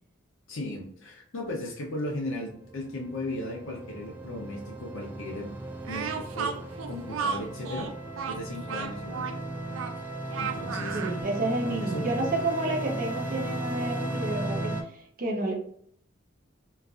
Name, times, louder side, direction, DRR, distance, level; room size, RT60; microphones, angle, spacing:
voice 1, 0.5-5.5 5.9-6.6 6.9-7.9 8.3-9.4 10.3-11.0 11.6-12.1, left 1 dB, 80° left, -1 dB, 0.6 m, -36 dB
sound 1, 2.4-14.8, right 1 dB, 10° right, 0.3 m, -36 dB
Speech, 5.8-11.2, right 6 dB, 85° right, 0.4 m, -34 dB
voice 2, 10.9-15.5, right 2 dB, 45° right, 0 dB, 0.7 m, -30 dB
3.1 x 2.4 x 2.4 m, 0.62 s
head